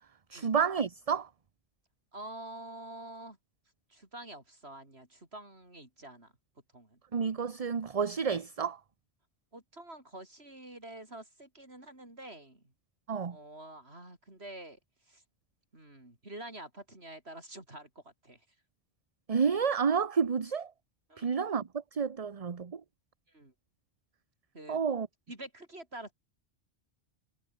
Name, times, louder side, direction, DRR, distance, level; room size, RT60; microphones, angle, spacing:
voice 1, 0.3-1.3 7.1-8.8 13.1-13.4 19.3-20.7 21.2-22.8 24.7-25.1, right 6 dB, 35° right, 0.8 m, -30 dB
voice 2, 2.1-3.4 3.9-6.3 6.7-7.0 9.5-12.6 13.3-14.8 15.1-15.2 15.7-18.4 21.1-21.4 23.3-23.5 24.5-24.8 25.3-26.1, right 1 dB, 65° right, 6.3 m, -47 dB
omnidirectional pair, 1.2 m